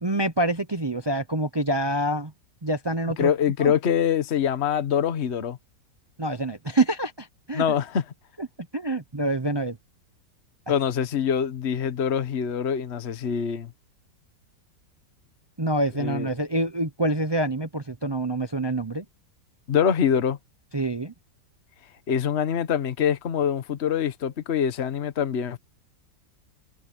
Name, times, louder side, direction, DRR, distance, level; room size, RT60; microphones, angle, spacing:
voice 1, 0.0-2.3 2.6-3.3 3.6-3.7 6.2-7.6 8.4-8.5 8.7-9.8 15.6-19.0 20.7-21.1, right 1 dB, 40° right, 0.3 m, -26 dB
voice 2, 3.2-5.6 7.5-8.0 10.7-13.7 16.0-16.3 19.7-20.4 22.1-25.6, left 8 dB, 45° left, 1.3 m, -24 dB
omnidirectional pair, 1.9 m